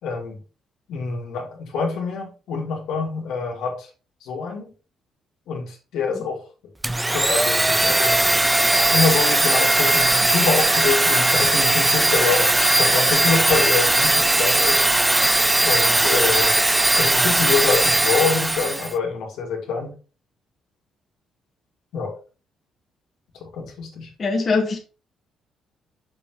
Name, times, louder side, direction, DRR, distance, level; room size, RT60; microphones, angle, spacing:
voice 1, 0.0-0.4 0.9-3.9 4.2-4.7 5.5-6.4 7.1-8.4 8.9-12.5 12.8-14.8 15.6-16.5 17.0-19.9 21.9-22.1 23.4-24.1, left 5 dB, 85° left, 2.1 m, -26 dB
Domestic sounds home sounds, 6.8-18.9, right 1 dB, 10° right, 0.3 m, -18 dB
voice 2, 24.2-24.8, left 4 dB, 40° left, 1.4 m, -21 dB
6.3 x 5.7 x 3.1 m
cardioid pair, 90°, 0 cm